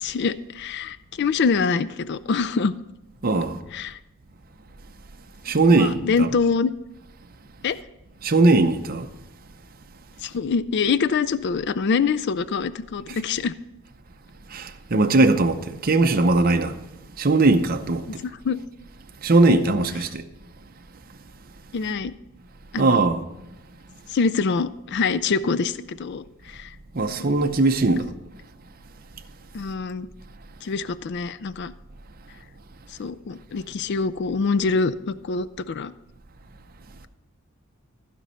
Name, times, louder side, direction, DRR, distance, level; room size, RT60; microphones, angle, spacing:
voice 1, 0.0-2.7 3.7-4.0 5.7-6.7 7.6-7.8 10.2-13.5 18.4-18.6 19.5-19.6 21.7-22.1 22.7-23.0 24.1-26.8 27.2-27.3 29.5-30.1 30.6-31.7 33.0-35.9, left 5 dB, 50° left, 0.4 m, -25 dB
voice 2, 3.2-3.6 5.4-6.3 8.2-9.1 13.1-13.2 14.5-16.8 17.2-18.1 19.2-20.2 22.8-23.2 26.9-28.1, right 2 dB, 40° right, 0.6 m, -19 dB
15.0 x 5.3 x 5.6 m
head